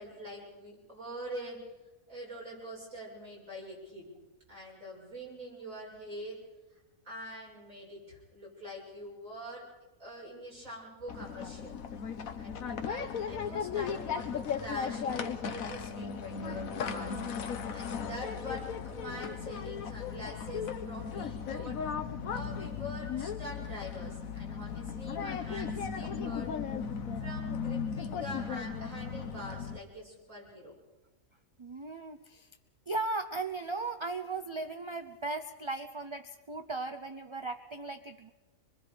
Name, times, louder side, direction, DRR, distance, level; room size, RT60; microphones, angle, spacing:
voice 1, 0.0-1.6 2.1-4.1 4.5-6.4 7.0-9.6 10.0-11.8 12.4-17.2 17.4-21.8 22.3-26.5 27.2-30.7, equal, 75° right, -4 dB, 7.6 m, -44 dB
sound 1, 11.1-29.8, left 6 dB, 85° left, 1.5 m, -36 dB
voice 2, 31.6-32.5 32.9-38.3, right 3 dB, 30° right, 8 dB, 0.5 m, -37 dB
25.5 x 21.5 x 5.1 m, 1.1 s
omnidirectional pair, 1.4 m